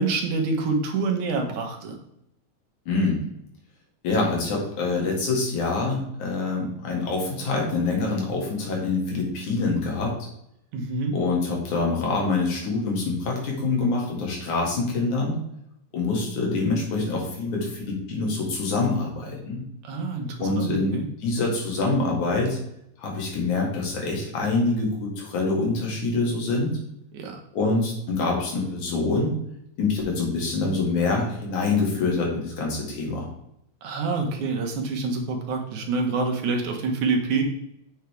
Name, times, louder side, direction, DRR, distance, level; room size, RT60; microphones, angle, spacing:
voice 1, 0.0-2.0 10.7-11.2 19.9-21.1 27.1-27.4 33.8-37.4, right 4 dB, 85° right, 2 dB, 2.7 m, -26 dB
voice 2, 2.9-3.2 4.0-10.1 11.1-15.4 15.9-19.6 20.4-22.6 23.0-26.7 27.5-29.3 29.8-33.3, left 3 dB, 80° left, -1 dB, 3.6 m, -25 dB
8.1 x 6.4 x 3.4 m, 0.77 s
omnidirectional pair, 3.4 m